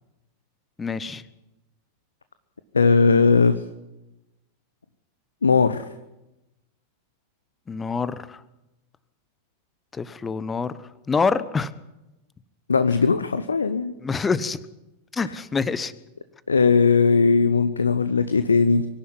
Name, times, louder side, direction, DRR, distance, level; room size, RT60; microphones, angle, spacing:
voice 1, 0.8-1.2 7.7-8.4 9.9-10.7 11.1-11.7 14.0-14.6 15.1-15.9, left 5 dB, 15° left, 17 dB, 0.9 m, -26 dB
voice 2, 2.7-3.6 5.4-5.8 12.7-13.9 16.5-18.9, left 4 dB, 75° left, 12 dB, 0.8 m, -18 dB
24.0 x 11.0 x 9.9 m, 0.99 s
figure-of-eight pair, 90°, 0 cm